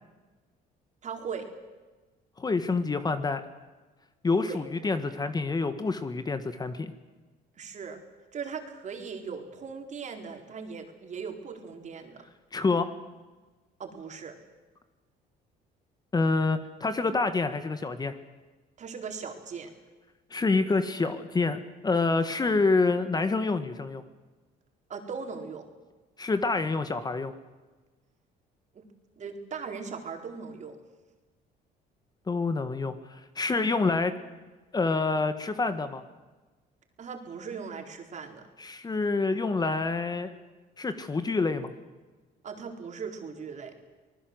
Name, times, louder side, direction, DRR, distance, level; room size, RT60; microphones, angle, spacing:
voice 1, 1.0-1.5 4.4-4.6 7.6-8.0 8.3-12.2 13.8-14.4 18.8-19.7 24.9-25.7 28.7-28.9 29.2-30.8 37.0-38.5 42.4-43.7, right 5 dB, 45° right, 4 dB, 4.2 m, -39 dB
voice 2, 2.4-3.4 4.2-6.9 12.5-12.9 16.1-18.1 20.3-24.0 26.2-27.3 32.3-34.1 34.7-36.0 38.6-40.3 40.8-41.7, left 3 dB, 25° left, 10 dB, 1.6 m, -27 dB
25.5 x 20.0 x 7.9 m, 1.2 s
cardioid pair, 110°, 17 cm